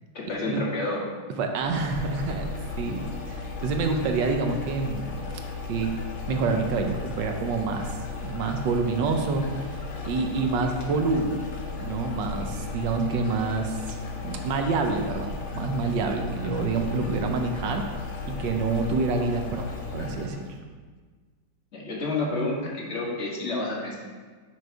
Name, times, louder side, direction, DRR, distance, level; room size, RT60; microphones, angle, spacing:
voice 1, 0.1-1.0 21.7-23.9, left 2 dB, 40° left, -4 dB, 1.5 m, -29 dB
voice 2, 1.3-2.5 2.8-5.2 5.7-5.9 6.3-9.4 10.0-11.4 11.8-13.9 14.2-17.8 18.2-19.7 19.9-20.4, right 4 dB, 75° right, 4 dB, 1.3 m, -27 dB
sound 1, 1.6-20.5, left 4 dB, 60° left, 0.7 m, -35 dB
6.0 x 5.1 x 4.5 m, 1.5 s
omnidirectional pair, 2.1 m